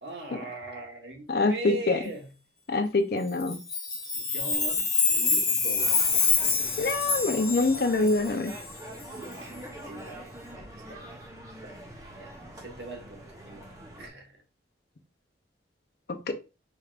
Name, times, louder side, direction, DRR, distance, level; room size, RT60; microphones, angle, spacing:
voice 1, 0.0-2.3 4.1-6.0 9.2-11.2 11.6-13.7 14.0-14.3, right 1 dB, 70° right, 1.2 m, -41 dB
voice 2, 1.3-2.0 2.7-3.6 6.8-8.5 16.3-16.4, left 3 dB, 55° left, 0.6 m, -25 dB
Chime, 3.4-8.5, left 4 dB, 20° left, 1.2 m, -26 dB
sound 1, 5.8-14.1, right 1 dB, 20° right, 0.8 m, -44 dB
4.5 x 3.4 x 2.4 m
head